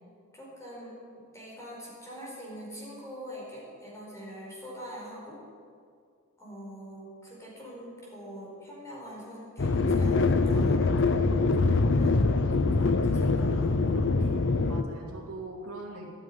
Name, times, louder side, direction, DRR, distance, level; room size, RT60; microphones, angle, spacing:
voice 1, 0.3-1.0 1.3-5.4 6.4-11.0 11.9-12.2 12.7-14.1, equal, 15° left, -4 dB, 4.9 m, -44 dB
sound 1, 9.6-14.8, left 3 dB, 55° left, 0.7 m, -24 dB
voice 2, 14.6-16.1, right 2 dB, 80° right, 0 dB, 2.4 m, -42 dB
12.5 x 9.7 x 10.0 m, 2.2 s
head